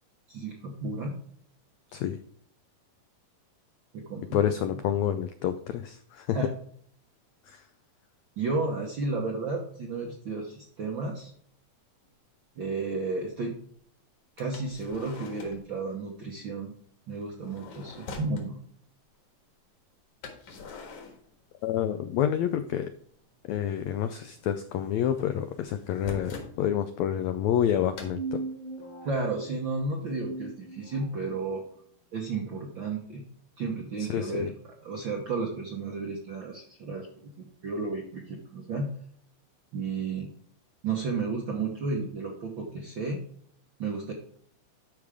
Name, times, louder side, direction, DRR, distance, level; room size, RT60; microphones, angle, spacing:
voice 1, 0.3-1.1 3.9-4.4 6.3-6.5 8.4-11.3 12.6-13.6 14.4-16.7 17.1-18.6 29.0-31.6 32.1-33.2 33.6-34.5 34.8-37.1 37.4-38.9 39.7-40.3 40.8-43.2 43.8-44.1, right 3 dB, 70° right, 0 dB, 1.1 m, -32 dB
voice 2, 4.3-6.4 7.5-7.7 21.6-22.9 23.5-28.4 34.0-34.5, left 10 dB, 90° left, 9 dB, 1.5 m, -28 dB
sound 1, 12.0-12.1 14.4-15.7 17.2-18.5 20.2-21.9 22.2-23.0 23.3-26.6 28.0-28.2, left 4 dB, 65° left, 2.9 m, -45 dB
sound 2, 27.8-31.3, right 3 dB, 25° left, 1.1 m, -39 dB
12.5 x 4.9 x 3.5 m, 0.62 s
omnidirectional pair, 3.8 m